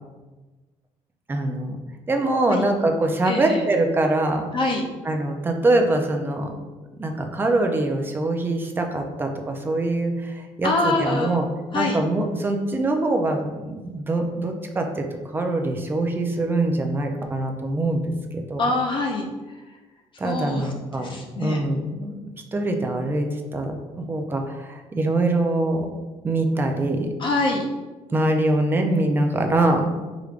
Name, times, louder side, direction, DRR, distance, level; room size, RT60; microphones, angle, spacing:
voice 1, 1.3-1.8 2.1-4.5 5.0-6.6 7.0-11.5 11.7-15.1 15.3-18.7 20.2-22.2 22.5-25.9 26.2-27.1 28.1-29.9, right 2 dB, 15° right, 4 dB, 0.4 m, -23 dB
voice 2, 3.3-3.6 4.5-4.9 10.6-11.4 11.7-12.0 18.6-19.3 20.2-21.6 27.2-27.7, left 2 dB, 45° left, 1 dB, 0.5 m, -25 dB
4.9 x 3.2 x 2.4 m, 1.2 s
cardioid pair, 130°, 12 cm